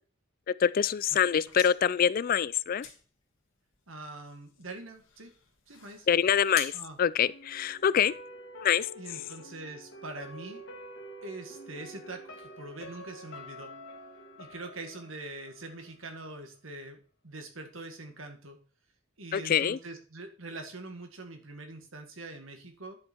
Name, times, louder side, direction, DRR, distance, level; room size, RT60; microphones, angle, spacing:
voice 1, 0.5-2.9 6.1-6.7 7.0-8.1 8.6-8.9 19.3-19.8, left 8 dB, 45° left, 0.3 m, -25 dB
sound 1, 1.2-8.0, left 7 dB, 80° left, 1.9 m, -47 dB
voice 2, 3.9-5.3 5.7-6.1 6.7-7.0 9.0-10.6 11.2-13.7 14.4-17.0 17.2-18.6 19.2-23.0, right 2 dB, 85° right, 1.8 m, -43 dB
sound 2, 7.2-16.2 16.5-16.6, equal, 65° left, 1.6 m, -47 dB
10.5 x 5.6 x 4.4 m
head